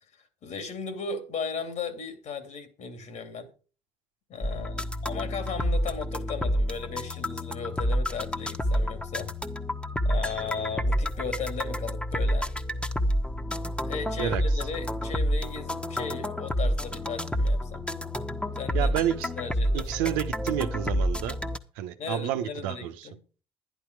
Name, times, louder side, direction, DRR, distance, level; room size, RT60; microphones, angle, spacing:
voice 1, 0.4-3.5 4.3-9.3 10.0-12.5 13.9-17.8 18.5-18.9 19.4-19.9 22.0-23.2, left 5 dB, 65° left, 2.8 m, -36 dB
sound 1, 4.4-21.6, equal, 10° left, 1.4 m, -29 dB
voice 2, 18.7-19.3 19.7-21.4 21.8-23.1, right 11 dB, 85° right, 1.0 m, -30 dB
11.0 x 11.0 x 4.8 m
hypercardioid pair, 60°, 13 cm